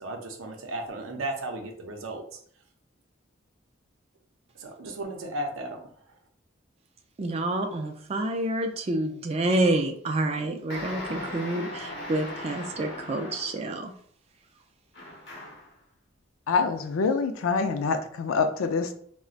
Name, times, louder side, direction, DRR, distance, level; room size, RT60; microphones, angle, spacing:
voice 1, 0.0-2.2 4.6-5.8, right 1 dB, 80° right, 3 dB, 0.6 m, -34 dB
voice 2, 7.2-13.9, right 1 dB, 30° right, 4 dB, 0.3 m, -28 dB
sound 1, 10.7-13.7 14.9-15.7, left 1 dB, 55° left, 0.9 m, -38 dB
voice 3, 16.5-19.0, left 4 dB, 90° left, 8 dB, 0.4 m, -25 dB
3.8 x 2.1 x 2.4 m, 0.62 s
head